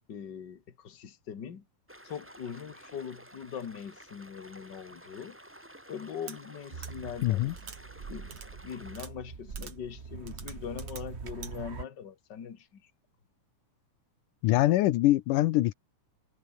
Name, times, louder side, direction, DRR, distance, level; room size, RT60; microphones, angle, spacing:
voice 1, 0.1-1.6 2.0-5.4 5.9-7.6 8.1-8.3 8.6-12.9, left 7 dB, 35° left, 2.3 m, -41 dB
sound 1, 1.9-9.1, equal, 5° right, 3.1 m, -52 dB
wooden spoons, 6.3-6.4 6.8-6.9 7.6-7.8 8.3-8.5 8.9-9.1 9.6-9.7 10.3-11.0 11.4-11.5, right 7 dB, 55° right, 3.5 m, -45 dB
sound 2, 6.7-11.8, right 5 dB, 85° right, 0.5 m, -43 dB
voice 2, 7.2-7.5 14.4-15.7, left 16 dB, 85° left, 2.4 m, -24 dB
omnidirectional pair, 3.7 m